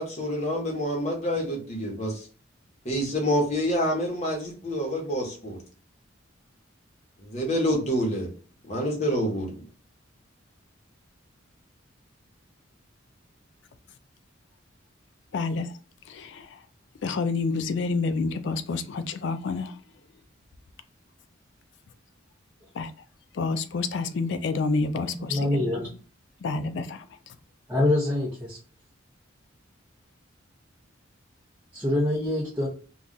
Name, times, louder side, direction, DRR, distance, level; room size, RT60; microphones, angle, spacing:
voice 1, 0.0-2.3 2.8-5.6 7.2-8.3 8.7-9.5, equal, 35° left, 1.0 m, -27 dB
voice 2, 15.3-15.8 16.0-16.7 17.0-19.8 22.7-23.0 23.3-25.5 26.4-27.4, left 4 dB, 60° left, 0.3 m, -29 dB
voice 3, 25.3-25.9 27.7-28.6 31.7-32.7, left 1 dB, 10° right, 0.7 m, -25 dB
2.4 x 2.3 x 3.8 m
head